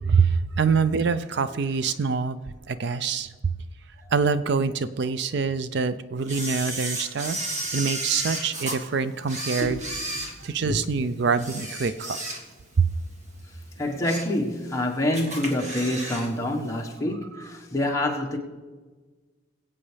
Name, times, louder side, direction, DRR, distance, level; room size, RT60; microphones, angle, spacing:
voice 1, 0.0-2.4 2.7-3.5 4.1-9.8 10.4-12.2 12.8-12.9, right 5 dB, 60° right, 0.5 m, -25 dB
Camera, 6.3-8.8 9.2-10.9 11.3-12.7 13.1-13.2 13.8-14.4 14.7-14.8 15.1-16.3 16.5-16.6, right 1 dB, 40° right, 1.9 m, -33 dB
voice 2, 13.8-18.4, left 1 dB, 15° left, 1.4 m, -27 dB
22.0 x 8.4 x 3.4 m
head